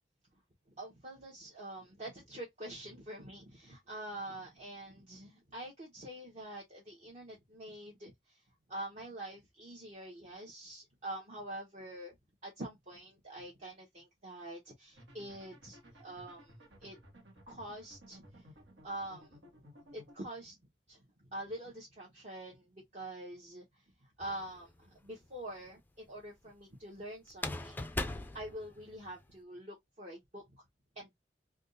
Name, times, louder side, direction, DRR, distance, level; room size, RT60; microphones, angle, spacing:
voice 1, 0.8-8.1 8.7-12.1 12.4-16.5 16.8-16.9 17.5-18.4 18.8-19.4 19.9-20.6 20.9-21.0 21.3-23.6 24.2-27.8 28.3-30.4 31.0-31.1, right 1 dB, 40° right, 1.0 m, -45 dB
sound 1, 15.0-20.2, equal, 80° right, 1.3 m, -57 dB
sound 2, 24.2-24.9 27.3-29.3, left 2 dB, 10° left, 0.3 m, -39 dB
3.5 x 2.4 x 2.5 m
head